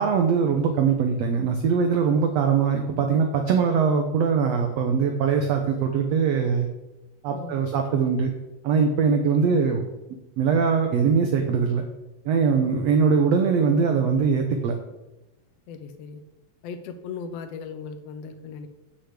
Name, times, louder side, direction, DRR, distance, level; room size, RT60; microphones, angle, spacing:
voice 1, 0.0-6.7 7.2-8.3 8.6-9.8 10.4-11.8 12.2-14.7, right 6 dB, 70° right, 4 dB, 1.6 m, -22 dB
voice 2, 7.3-7.7 12.6-12.7 15.7-16.2 16.6-18.7, left 5 dB, 70° left, 8 dB, 1.5 m, -37 dB
7.7 x 6.4 x 8.1 m, 1.0 s
omnidirectional pair, 3.9 m